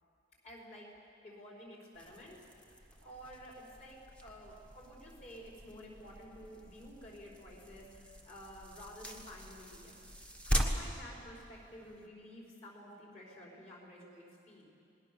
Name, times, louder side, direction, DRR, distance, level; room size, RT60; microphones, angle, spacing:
voice 1, 0.4-0.9 1.2-2.5 3.0-10.0 10.4-14.7, equal, 35° left, -2 dB, 5.2 m, -51 dB
sound 1, 1.9-12.1, equal, 5° left, 1.4 m, -41 dB
27.0 x 20.5 x 7.1 m, 2.6 s
head